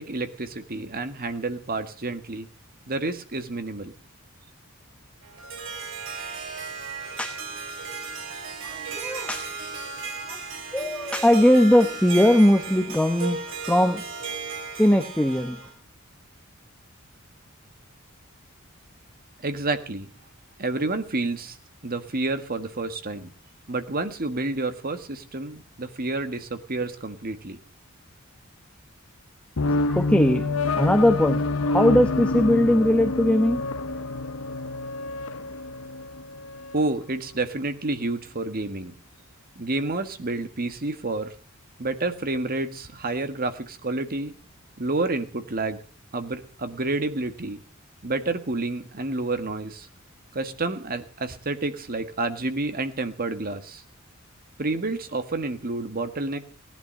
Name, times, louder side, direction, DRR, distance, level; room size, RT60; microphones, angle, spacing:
voice 1, 0.0-2.5 2.9-3.9 19.4-20.1 20.6-21.6 21.8-23.3 23.7-27.6 36.7-38.9 39.5-41.3 41.8-44.3 44.8-45.8 46.1-47.6 48.0-49.9 50.3-53.8 54.6-56.4, right 2 dB, 45° right, 9 dB, 1.6 m, -29 dB
Harp, 5.2-15.7, right 4 dB, 65° right, 3.3 m, -35 dB
voice 2, 8.6-9.6 10.3-10.4 10.7-14.0 14.8-15.6 29.9-30.5 30.7-33.6, left 1 dB, 5° left, 8 dB, 1.0 m, -20 dB
sound 1, 29.6-36.9, left 2 dB, 70° left, 0.9 m, -27 dB
17.5 x 11.0 x 6.4 m, 0.39 s
head